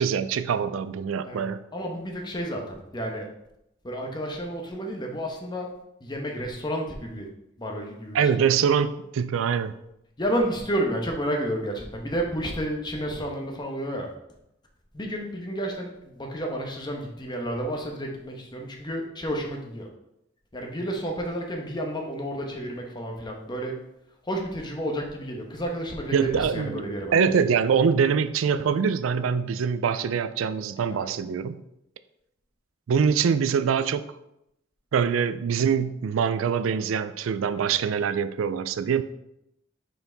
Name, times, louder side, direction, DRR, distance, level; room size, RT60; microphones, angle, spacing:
voice 1, 0.0-1.6 8.1-9.8 26.1-31.6 32.9-34.1 34.9-39.0, right 6 dB, 85° right, 0.4 m, -24 dB
voice 2, 1.7-3.3 3.8-5.7 6.0-7.3 7.6-8.3 10.2-14.1 14.9-19.9 20.5-23.8 24.2-27.2 30.9-31.1, equal, 25° left, 1.0 m, -31 dB
5.7 x 4.5 x 3.9 m
head